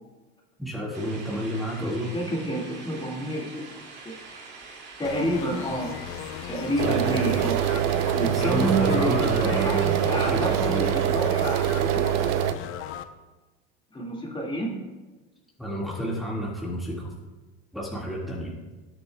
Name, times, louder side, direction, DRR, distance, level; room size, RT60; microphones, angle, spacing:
voice 1, 0.6-2.1 6.8-7.3 8.3-10.5 15.6-17.1 17.7-18.6, equal, ahead, -5 dB, 1.9 m, -30 dB
sound 1, 0.9-10.7, right 4 dB, 35° right, 2.4 m, -44 dB
voice 2, 2.1-4.2 5.0-6.0 6.5-7.6 8.2-12.1 13.9-14.8, right 1 dB, 15° left, -2 dB, 2.0 m, -29 dB
sound 2, 5.0-13.0, left 11 dB, 45° left, 0.6 m, -37 dB
sound 3, 6.8-12.5, right 11 dB, 60° right, 0.6 m, -24 dB
18.0 x 6.6 x 2.3 m, 1.2 s
supercardioid pair, 110°, 30 cm